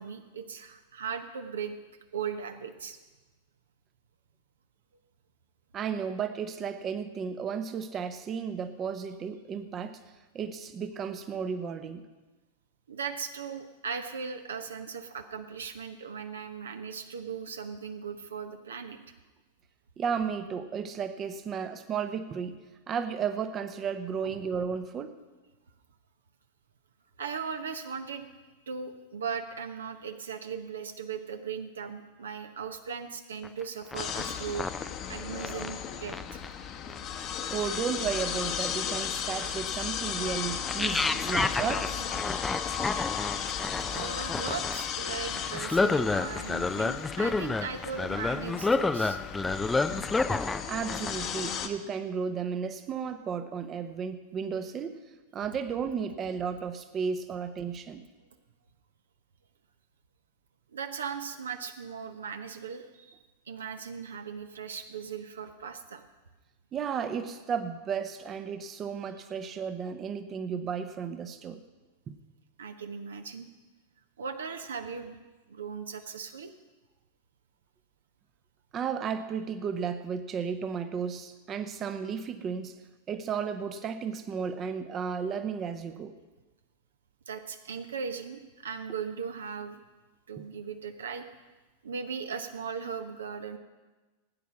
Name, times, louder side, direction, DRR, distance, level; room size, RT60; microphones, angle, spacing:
voice 1, 0.0-1.8 2.1-3.0 12.9-19.0 24.2-24.3 27.2-28.3 28.7-34.7 35.1-36.4 43.9-49.2 60.7-63.2 63.5-66.0 72.6-73.5 74.2-75.2 75.5-76.5 87.3-89.8 90.3-91.3 91.8-93.6, right 6 dB, 65° right, 8 dB, 0.9 m, -38 dB
voice 2, 5.7-10.0 10.3-12.0 20.0-22.6 22.9-25.2 37.5-42.1 50.6-55.0 55.3-58.0 66.7-71.6 72.1-72.2 78.7-82.7 83.1-86.1 90.4-90.5, right 6 dB, 25° right, 9 dB, 0.9 m, -33 dB
sound 1, 33.4-33.6 33.9-35.7 36.1-36.5 36.9-37.0 37.6-37.8 38.4-38.7 39.4-39.5 40.6-50.6 50.9-51.2, left 3 dB, 10° left, 0.4 m, -30 dB
sound 2, 34.0-51.7, left 8 dB, 35° left, 1.0 m, -35 dB
17.0 x 9.4 x 5.8 m, 1.2 s
figure-of-eight pair, 90°, 0 cm